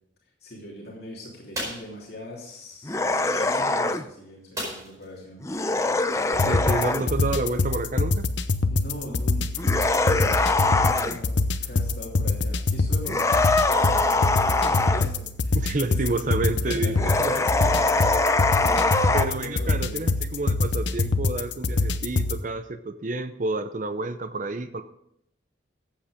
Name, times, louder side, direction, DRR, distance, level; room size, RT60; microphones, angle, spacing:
voice 1, 0.4-5.4 8.7-9.8 10.2-16.2 16.6-19.0 19.4-20.0 24.6-24.7, left 1 dB, 55° left, -4 dB, 3.2 m, -41 dB
sound 1, 1.5-1.9 4.5-5.1 5.5-5.6 6.0-6.2, equal, 20° right, 4.8 m, -33 dB
sound 2, 2.8-4.1 5.4-7.1 9.6-11.2 13.0-15.1 17.0-19.2, left 2 dB, 15° left, 0.6 m, -23 dB
sound 3, 6.3-22.4, left 3 dB, 80° left, 0.8 m, -25 dB
voice 2, 6.4-8.3 15.5-17.3 19.1-24.8, right 2 dB, 45° right, 10 dB, 0.7 m, -29 dB
14.5 x 8.4 x 5.0 m, 0.75 s
head